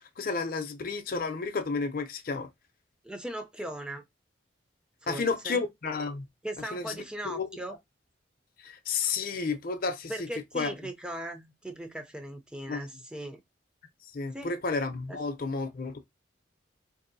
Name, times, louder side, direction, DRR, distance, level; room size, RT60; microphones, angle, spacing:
voice 1, 0.2-2.5 5.1-6.3 6.7-7.5 8.6-10.3 10.5-10.7 12.7-12.8 14.1-16.0, left 4 dB, 45° left, 0.5 m, -31 dB
voice 2, 3.0-4.0 5.0-5.6 6.4-7.8 10.1-13.4 14.3-14.5 15.1-15.2, right 1 dB, 5° right, 0.4 m, -38 dB
4.5 x 2.7 x 2.6 m
head